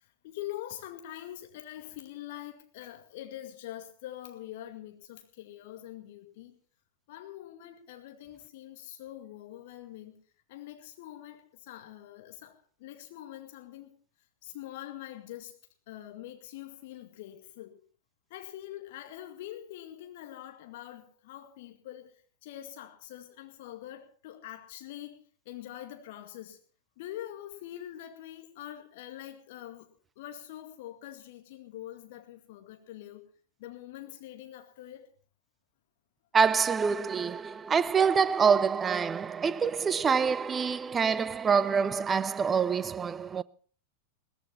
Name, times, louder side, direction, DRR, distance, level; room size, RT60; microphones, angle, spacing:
voice 1, 0.2-6.6 7.1-10.1 10.5-13.9 14.4-15.5 15.9-17.8 18.3-22.1 22.4-25.2 25.5-26.6 27.0-29.9 30.2-33.3 33.6-35.1, left 13 dB, 50° left, 2.1 m, -44 dB
voice 2, 36.3-43.4, right 6 dB, 20° right, 0.6 m, -26 dB
18.0 x 14.5 x 4.2 m
figure-of-eight pair, 90°, 0 cm